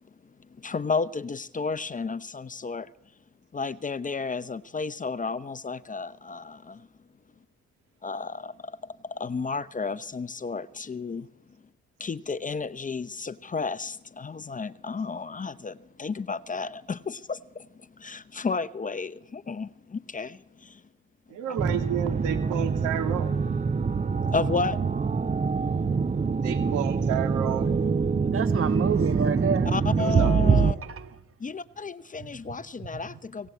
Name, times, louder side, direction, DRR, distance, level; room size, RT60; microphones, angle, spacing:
voice 1, 0.6-2.9 3.5-6.9 8.0-11.3 12.0-20.8 24.3-24.8 29.7-30.8 31.4-33.5, left 4 dB, 25° left, 0.8 m, -32 dB
voice 2, 21.3-23.3 26.4-27.8 30.0-30.8, right 10 dB, 90° right, 2.9 m, -31 dB
sound 1, 21.6-30.7, right 5 dB, 25° right, 0.8 m, -25 dB
voice 3, 28.2-29.9 30.8-31.1 32.2-32.3, right 6 dB, 45° right, 1.6 m, -29 dB
24.5 x 17.5 x 8.4 m
cardioid pair, 90°, 30 cm